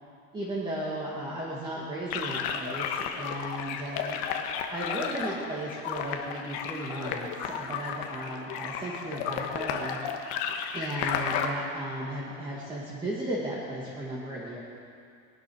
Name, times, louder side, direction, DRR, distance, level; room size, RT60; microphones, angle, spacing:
voice 1, 0.3-4.2 4.7-10.0 10.7-14.6, right 1 dB, 15° right, -6 dB, 1.9 m, -35 dB
sound 1, 2.1-11.5, left 7 dB, 65° left, 1.4 m, -33 dB
20.0 x 11.5 x 6.3 m, 2.3 s
cardioid pair, 180°, 31 cm